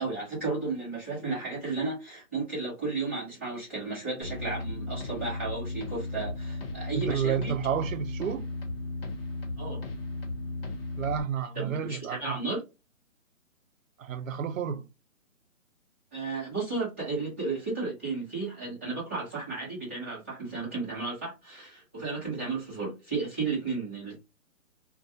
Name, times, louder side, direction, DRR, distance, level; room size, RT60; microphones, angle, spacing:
voice 1, 0.0-7.5 9.6-9.8 11.5-12.6 16.1-24.2, right 3 dB, 10° right, 0.7 m, -33 dB
sound 1, 4.2-11.2, left 2 dB, 45° left, 0.8 m, -35 dB
voice 2, 6.9-8.5 11.0-12.4 14.0-14.9, right 8 dB, 70° right, 0.5 m, -30 dB
2.3 x 2.2 x 2.6 m
hypercardioid pair, 170°, 42 cm